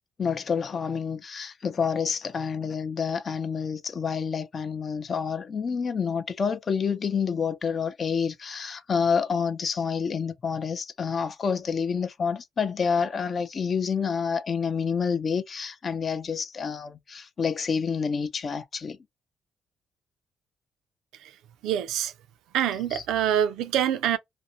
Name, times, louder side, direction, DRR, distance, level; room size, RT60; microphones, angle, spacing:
voice 1, 0.2-19.0 22.9-23.0, left 6 dB, 45° left, 0.5 m, -28 dB
voice 2, 21.6-22.1 22.5-24.2, right 10 dB, 90° right, 0.4 m, -25 dB
2.5 x 2.1 x 2.7 m
cardioid pair, 90°, 0 cm